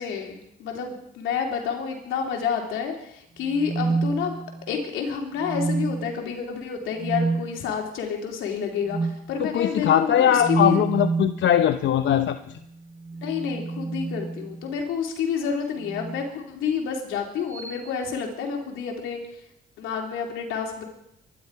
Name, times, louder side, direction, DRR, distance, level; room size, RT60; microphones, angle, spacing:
voice 1, 0.0-4.4 4.7-10.8 13.2-19.2 19.8-20.8, left 6 dB, 90° left, 1 dB, 3.3 m, -29 dB
sound 1, 3.5-4.8 5.4-6.2 7.0-7.5 8.9-9.2 10.4-11.4 12.9-14.7 15.8-16.3 17.5-17.8, right 4 dB, 40° right, 5.8 m, -28 dB
voice 2, 9.4-12.6, left 10 dB, 70° left, 9 dB, 0.8 m, -21 dB
24.0 x 11.0 x 4.8 m, 0.77 s
cardioid pair, 90°, 20 cm